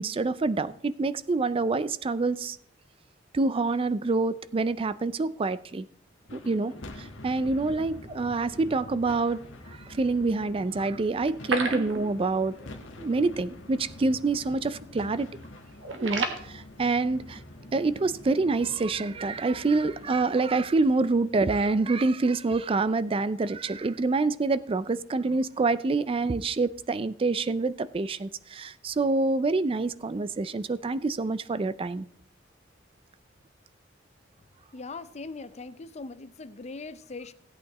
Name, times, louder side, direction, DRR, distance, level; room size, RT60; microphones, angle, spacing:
voice 1, 0.0-2.6 3.3-5.9 6.3-9.4 9.7-12.7 13.0-15.3 15.9-17.4 17.7-32.0, right 3 dB, 30° right, 0.4 m, -27 dB
sound 1, 6.2-22.6, left 1 dB, 75° left, 1.4 m, -46 dB
sound 2, 11.3-12.5 12.8-12.9 13.2-13.3 14.0-14.2 14.5-14.8 15.2-16.4, right 3 dB, 75° right, 1.4 m, -31 dB
voice 2, 34.7-37.3, left 3 dB, 35° left, 0.5 m, -40 dB
16.5 x 8.7 x 3.0 m
head